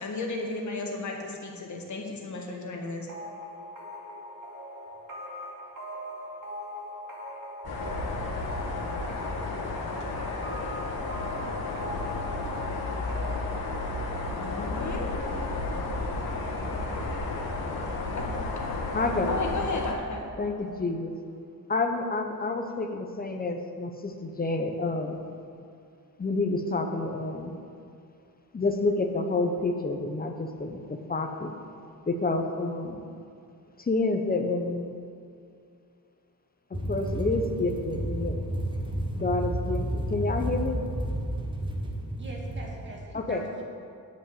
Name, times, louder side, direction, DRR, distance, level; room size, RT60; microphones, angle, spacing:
voice 1, 0.0-3.1 14.4-15.1 18.1-18.3 18.7-18.8 19.3-20.2, left 3 dB, 50° left, 0 dB, 1.6 m, -34 dB
sound 1, 3.1-16.6, equal, 55° right, 2.2 m, -41 dB
sound 2, 7.6-19.9, left 2 dB, 80° left, 1.9 m, -32 dB
voice 2, 18.9-19.4 20.4-21.1 21.7-25.2 26.2-27.6 28.5-31.5 32.1-33.0 33.8-35.0 36.7-38.4 39.1-40.9 43.1-43.5, left 3 dB, 25° left, 4 dB, 0.8 m, -29 dB
sound 3, 36.7-43.0, right 1 dB, 15° right, 1.0 m, -31 dB
voice 3, 42.2-43.6, right 1 dB, 30° right, -3 dB, 1.9 m, -44 dB
10.0 x 5.3 x 8.3 m, 2.4 s
wide cardioid pair, 150°, 37 cm